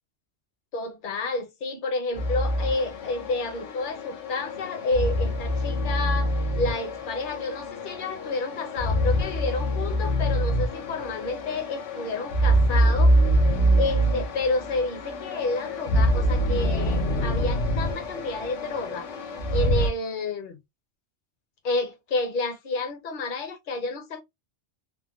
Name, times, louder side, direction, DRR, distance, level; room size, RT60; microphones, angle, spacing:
voice 1, 0.7-13.2 13.5-20.6 21.6-24.2, left 3 dB, 50° left, 0.8 m, -30 dB
sound 1, 2.1-19.9, equal, 90° left, 1.1 m, -25 dB
3.6 x 2.2 x 2.2 m
omnidirectional pair, 1.2 m